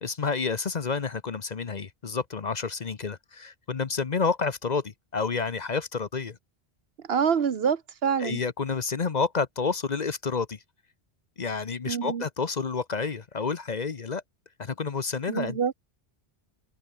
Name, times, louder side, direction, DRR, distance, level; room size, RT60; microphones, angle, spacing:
voice 1, 0.0-6.4 8.2-10.6 11.4-14.2 14.6-15.7, left 5 dB, 45° left, 0.9 m, -29 dB
voice 2, 7.1-8.4 11.9-12.2 15.3-15.7, right 7 dB, 70° right, 1.2 m, -26 dB
omnidirectional pair, 1.1 m